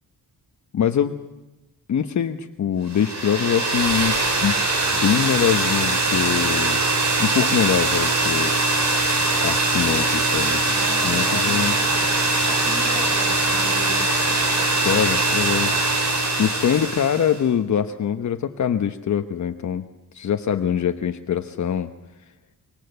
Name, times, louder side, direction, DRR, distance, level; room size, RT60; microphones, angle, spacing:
voice 1, 0.7-1.2 1.9-4.1 4.4-4.6 4.9-6.8 7.2-8.5 9.4-10.6 11.0-11.8 14.8-15.7 16.4-19.9 20.1-21.9, left 8 dB, 50° left, 7 dB, 1.1 m, -23 dB
sound 1, 2.9-17.4, right 2 dB, 45° right, 4.9 m, -21 dB
voice 2, 10.7-14.7, equal, ahead, 1 dB, 6.3 m, -38 dB
25.5 x 24.5 x 8.1 m, 1.0 s
wide cardioid pair, 175°, 37 cm